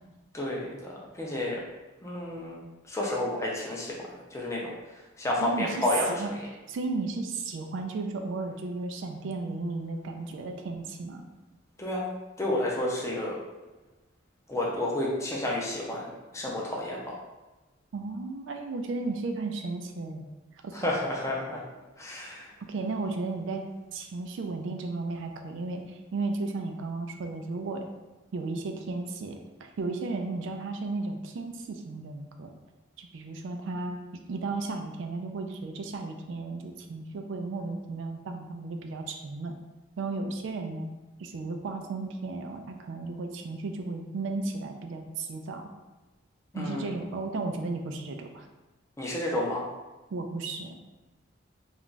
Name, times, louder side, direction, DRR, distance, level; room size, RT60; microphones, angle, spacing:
voice 1, 0.3-1.6 2.0-6.3 11.8-12.1 12.4-13.4 14.5-17.1 20.7-21.6 22.0-22.5 46.5-46.9 49.0-49.7, left 1 dB, 15° left, -3 dB, 0.5 m, -31 dB
voice 2, 5.4-5.8 6.1-6.3 6.7-11.2 17.9-20.2 20.6-20.9 22.7-23.6 23.9-27.8 28.3-29.4 29.8-32.5 33.0-34.0 34.3-39.5 40.0-40.9 41.2-45.6 46.5-48.5 50.1-50.8, right 3 dB, 65° right, 4 dB, 0.3 m, -34 dB
2.4 x 2.2 x 3.8 m, 1.1 s
head